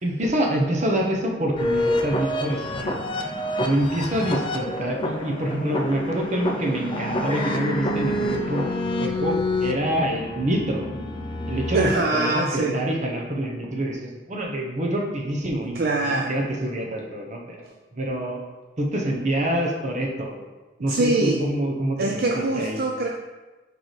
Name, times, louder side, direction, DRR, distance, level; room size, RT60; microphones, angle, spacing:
voice 1, 0.0-2.9 3.6-10.9 11.5-18.4 18.8-20.4 20.8-22.3 22.6-22.8, right 1 dB, 40° right, 0 dB, 0.9 m, -26 dB
sound 1, 1.6-12.5, left 1 dB, 30° left, 0.6 m, -28 dB
voice 2, 11.7-12.8 15.8-16.4 20.9-21.5 22.0-23.1, right 2 dB, 60° right, 1 dB, 0.5 m, -23 dB
6.5 x 4.7 x 3.2 m, 1.2 s
head